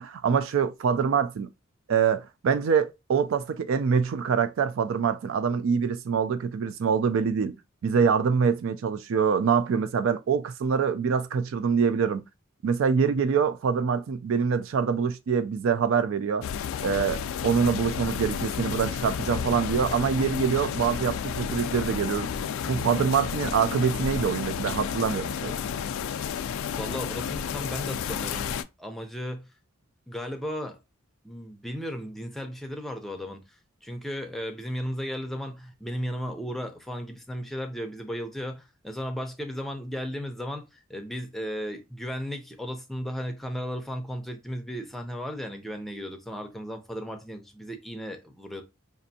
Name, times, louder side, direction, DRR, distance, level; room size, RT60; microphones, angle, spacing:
voice 1, 0.0-1.5 1.9-7.6 7.8-12.2 12.6-16.4 16.8-22.3 22.7-25.5, right 6 dB, 65° right, 0.3 m, -25 dB
sound 1, 16.4-28.6, left 7 dB, 70° left, 0.3 m, -31 dB
voice 2, 26.8-29.5 30.1-30.8 31.2-33.4 33.8-48.6, equal, ahead, 0.5 m, -35 dB
5.2 x 2.5 x 2.7 m
head